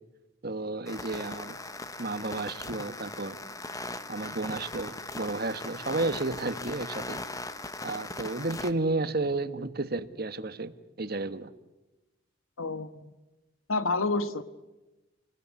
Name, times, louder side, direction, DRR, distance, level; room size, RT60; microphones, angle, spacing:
voice 1, 0.4-1.6 2.0-3.4 4.1-7.2 7.8-11.5, right 2 dB, 45° right, 11 dB, 1.3 m, -32 dB
sound 1, 0.9-8.7, left 2 dB, 15° left, 1.0 m, -39 dB
voice 2, 12.6-13.1 13.7-14.4, left 3 dB, 80° left, 12 dB, 1.4 m, -29 dB
29.0 x 20.0 x 9.6 m, 1.1 s
head